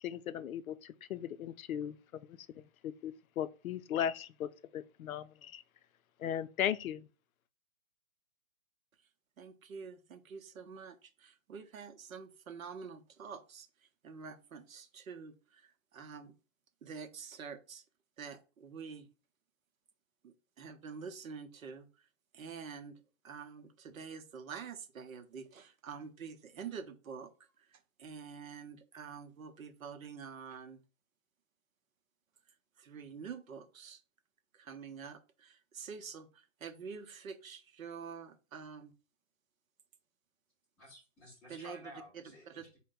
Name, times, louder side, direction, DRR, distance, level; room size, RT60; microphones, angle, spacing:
voice 1, 0.0-5.6 6.2-7.1, left 10 dB, 80° left, 0.5 m, -38 dB
voice 2, 9.4-16.3 16.8-17.8 18.2-19.1 20.2-22.1 22.3-27.3 27.6-30.8 32.8-34.0 34.5-38.9 41.5-42.7, right 6 dB, 75° right, 0.8 m, -47 dB
voice 3, 40.8-42.8, left 1 dB, 5° left, 0.5 m, -53 dB
4.4 x 2.2 x 3.8 m
hypercardioid pair, 145°, 41 cm